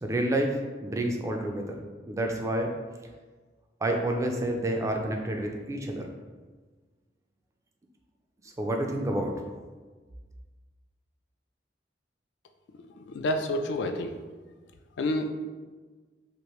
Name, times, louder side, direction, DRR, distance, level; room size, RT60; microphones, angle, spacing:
voice 1, 0.0-1.8 2.1-2.7 3.8-6.1 8.6-9.3, right 1 dB, 15° right, 2 dB, 0.3 m, -29 dB
voice 2, 13.0-14.1 15.0-15.3, left 1 dB, 70° left, 6 dB, 0.3 m, -29 dB
2.9 x 2.5 x 3.1 m, 1.4 s
head